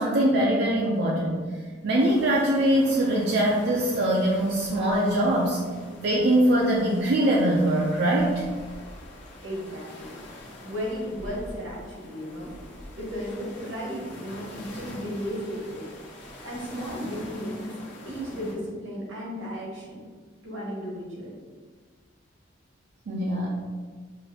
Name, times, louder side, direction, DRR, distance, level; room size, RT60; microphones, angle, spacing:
voice 1, 0.0-1.4 1.8-5.6 6.0-8.4 23.1-23.5, right 1 dB, 55° right, -3 dB, 0.4 m, -22 dB
sound 1, 2.0-18.5, left 1 dB, 60° left, 1.2 m, -44 dB
voice 2, 9.4-15.9 16.4-17.7 18.0-20.0 20.4-21.4, equal, 85° right, -4 dB, 1.2 m, -35 dB
4.8 x 2.6 x 2.8 m, 1.5 s
head